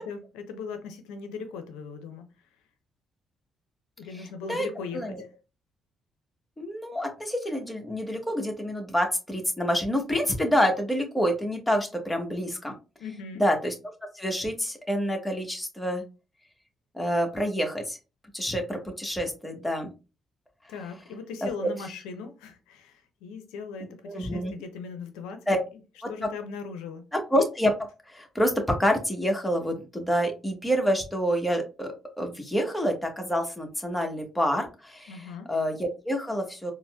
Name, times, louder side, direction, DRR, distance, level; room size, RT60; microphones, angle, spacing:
voice 1, 0.0-2.3 4.0-5.3 13.0-13.4 20.7-25.4 26.1-27.0 35.1-35.5, left 5 dB, 85° left, 0.5 m, -39 dB
voice 2, 4.1-4.7 4.9-5.2 6.6-12.7 13.4-13.7 14.1-16.0 16.9-18.0 18.3-19.9 21.4-21.5 24.0-24.5 25.5-25.6 26.0-26.1 27.1-27.7 28.1-36.7, equal, 10° left, 1.1 m, -27 dB
4.1 x 2.0 x 2.2 m
hypercardioid pair, 50°, 0 cm